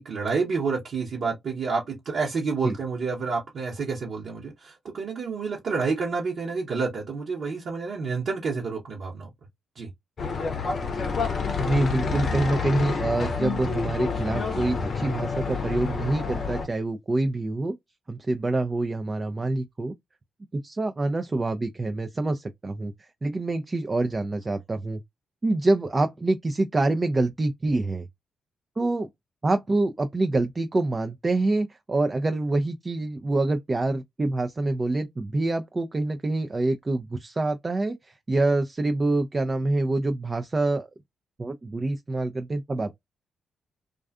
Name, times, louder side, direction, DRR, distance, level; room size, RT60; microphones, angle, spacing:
voice 1, 0.0-9.3 9.8-9.9, right 4 dB, 65° right, 0.9 m, -29 dB
sound 1, 10.2-16.7, left 5 dB, 55° left, 0.6 m, -28 dB
voice 2, 11.6-17.7 18.1-19.9 20.5-25.0 25.4-28.1 28.8-29.1 29.4-40.9 41.4-43.0, right 2 dB, 35° right, 0.4 m, -26 dB
2.4 x 2.3 x 2.3 m
hypercardioid pair, 45°, 0 cm